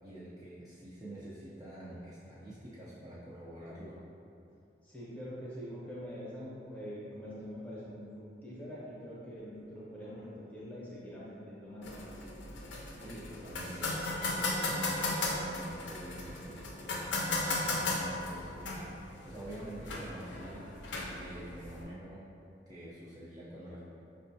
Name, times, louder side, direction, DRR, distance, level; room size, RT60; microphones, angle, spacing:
voice 1, 0.0-4.0 12.9-20.7 21.2-22.3 22.7-23.8, right 1 dB, 20° right, -9 dB, 0.4 m, -47 dB
voice 2, 4.8-12.2, equal, 10° left, -8 dB, 0.7 m, -44 dB
sound 1, 11.8-21.8, left 2 dB, 85° left, 0.5 m, -36 dB
5.1 x 2.2 x 2.6 m, 2.7 s
head